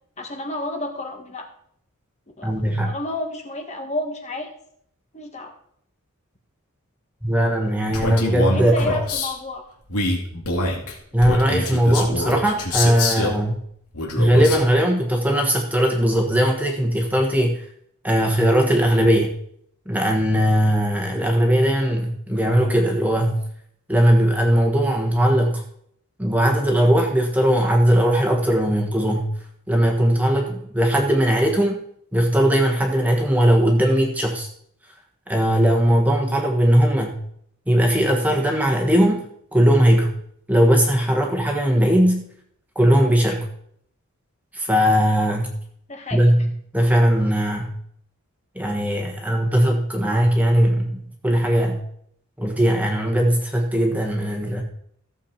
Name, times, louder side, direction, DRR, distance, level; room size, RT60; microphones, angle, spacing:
voice 1, 0.2-1.4 2.4-2.5 2.8-4.5 5.1-5.5 8.5-9.6 45.9-46.3, left 1 dB, 30° left, 3 dB, 1.6 m, -30 dB
voice 2, 2.4-2.9 7.2-8.9 11.1-13.6 14.2-17.6 18.0-19.3 19.9-23.4 23.9-25.6 26.2-29.3 29.7-31.8 32.1-34.5 35.3-37.2 37.7-39.2 39.5-40.1 40.5-42.2 42.7-43.5 44.5-45.5 46.1-47.7 48.5-51.8 52.4-54.6, equal, 5° right, 1 dB, 1.4 m, -19 dB
Male speech man speaking, 7.9-9.3 9.9-13.4 13.9-14.7, left 2 dB, 85° left, 2.6 m, -25 dB
15.0 x 7.3 x 4.4 m, 0.68 s
head